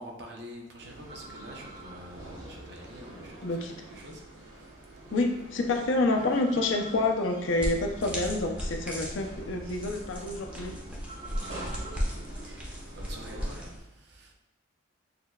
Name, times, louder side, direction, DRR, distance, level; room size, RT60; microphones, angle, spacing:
voice 1, 0.0-5.2 11.3-12.0 12.4-14.3, equal, 55° right, 1 dB, 0.6 m, -47 dB
sound 1, 0.8-13.7, right 2 dB, 85° right, 1.4 m, -45 dB
voice 2, 3.4-3.7 5.1-10.7, left 2 dB, 75° left, 3 dB, 0.5 m, -28 dB
sound 2, 7.6-13.8, equal, 5° right, 0.5 m, -36 dB
6.4 x 2.2 x 2.3 m, 0.97 s
head